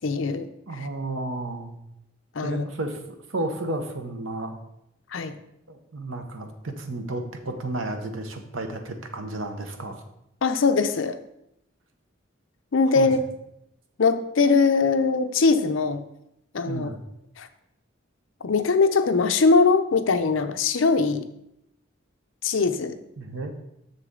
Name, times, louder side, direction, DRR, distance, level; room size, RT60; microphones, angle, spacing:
voice 1, 0.0-0.5 0.8-0.9 2.3-2.6 5.1-5.3 10.4-11.2 12.7-13.2 14.0-16.0 16.5-16.9 17.4-17.5 18.4-21.2 22.4-23.0, left 4 dB, 75° left, 9 dB, 0.6 m, -21 dB
voice 2, 0.7-1.8 2.4-3.0 3.3-4.6 5.7-10.0 12.9-13.1 16.7-17.0 23.2-23.5, right 2 dB, 85° right, 5 dB, 1.0 m, -32 dB
6.9 x 6.6 x 3.8 m, 0.82 s
head